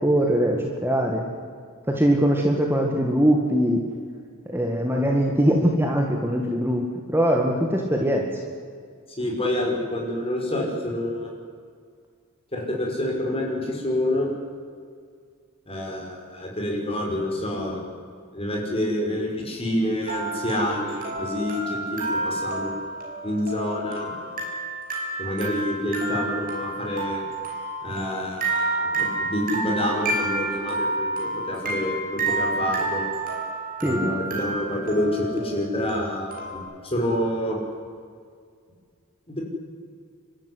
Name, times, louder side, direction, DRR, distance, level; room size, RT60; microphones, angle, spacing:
voice 1, 0.0-1.3 1.9-3.8 4.5-6.9 7.1-8.3 33.8-34.1, equal, 10° right, 1 dB, 2.0 m, -21 dB
voice 2, 9.2-11.3 12.5-14.3 15.7-17.8 18.3-22.8 23.2-24.1 25.2-27.2 27.8-33.0 33.8-37.6 39.3-39.4, left 1 dB, 25° left, -1 dB, 5.9 m, -27 dB
sound 1, 20.0-36.6, right 2 dB, 40° right, 5.8 m, -30 dB
29.0 x 13.0 x 9.9 m, 2.1 s
head